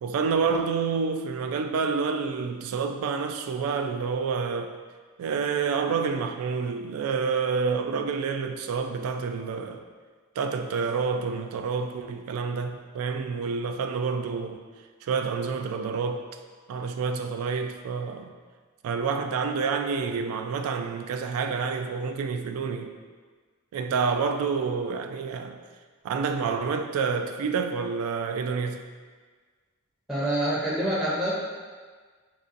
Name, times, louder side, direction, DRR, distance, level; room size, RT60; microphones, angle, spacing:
voice 1, 0.0-4.7 5.2-9.8 10.4-14.6 15.0-16.2 16.7-18.3 18.8-22.9 23.7-25.6 26.0-28.8, right 5 dB, 90° right, 11 dB, 0.3 m, -28 dB
voice 2, 30.1-31.3, right 1 dB, ahead, -9 dB, 0.5 m, -26 dB
4.3 x 2.6 x 2.5 m, 1.5 s
head